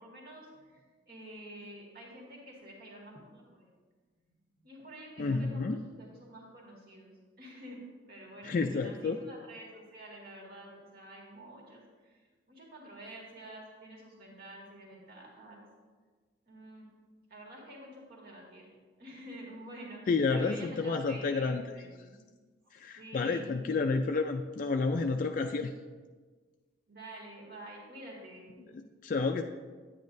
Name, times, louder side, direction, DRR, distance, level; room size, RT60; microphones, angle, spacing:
voice 1, 0.0-3.7 4.6-7.1 7.4-12.2 12.5-15.7 16.5-16.9 17.3-18.7 19.0-22.2 22.6-23.5 26.9-28.5, right 1 dB, 50° right, -3 dB, 2.0 m, -49 dB
voice 2, 5.2-5.8 8.4-9.2 20.1-21.6 22.7-25.7 28.7-29.4, left 4 dB, 45° left, 4 dB, 0.3 m, -30 dB
10.5 x 9.2 x 2.6 m, 1.4 s
head